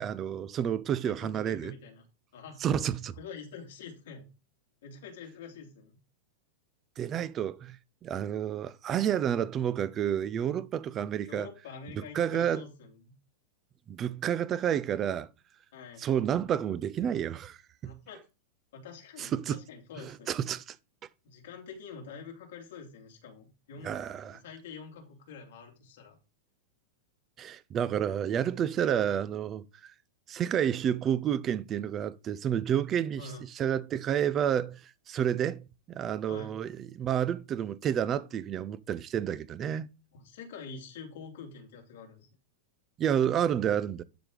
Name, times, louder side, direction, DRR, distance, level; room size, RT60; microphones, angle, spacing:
voice 1, 0.0-1.7 2.6-3.1 7.0-7.8 8.0-11.5 12.1-12.6 13.9-15.3 16.0-17.6 17.8-18.0 19.2-19.6 20.0-20.8 23.8-24.4 27.4-29.9 30.3-33.2 33.6-39.9 43.0-44.0, right 9 dB, 20° right, 0.4 m, -30 dB
voice 2, 1.0-2.0 2.3-2.6 3.2-4.3 4.8-6.0 11.2-13.1 15.7-16.0 17.8-18.2 18.7-20.4 21.2-24.0 24.2-26.2 33.2-33.4 36.3-36.6 40.1-42.3, left 5 dB, 65° left, 2.8 m, -46 dB
11.5 x 3.9 x 5.0 m
supercardioid pair, 170°, 0 cm